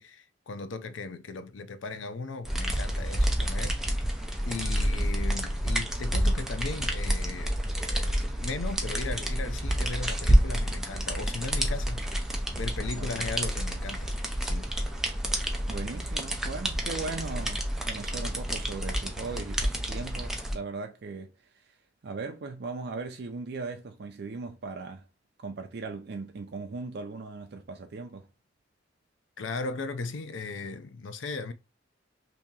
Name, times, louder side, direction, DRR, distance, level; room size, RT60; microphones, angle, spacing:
voice 1, 0.0-3.8 4.4-14.1 14.4-14.7 29.4-31.5, left 3 dB, 85° left, 0.5 m, -37 dB
sound 1, 2.4-20.5, equal, 5° right, 0.5 m, -29 dB
voice 2, 4.7-5.1 12.9-13.2 15.7-21.3 22.0-25.0 25.4-28.3, right 4 dB, 60° right, 0.4 m, -38 dB
2.9 x 2.8 x 3.6 m
head